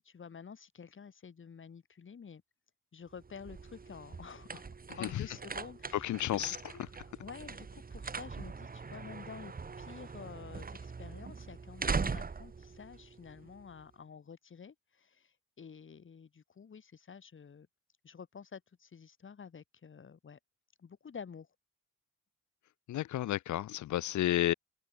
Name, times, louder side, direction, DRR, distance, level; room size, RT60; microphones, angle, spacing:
voice 1, 0.0-2.4 2.9-4.7 5.0-6.8 7.2-17.7 18.0-20.4 20.8-21.5, left 6 dB, 40° left, 4.5 m, -50 dB
sound 1, 3.1-13.8, right 5 dB, 30° right, 2.4 m, -41 dB
voice 2, 6.0-6.6 22.9-24.5, left 14 dB, 70° left, 1.2 m, -31 dB
open air
cardioid pair, 90°, 30 cm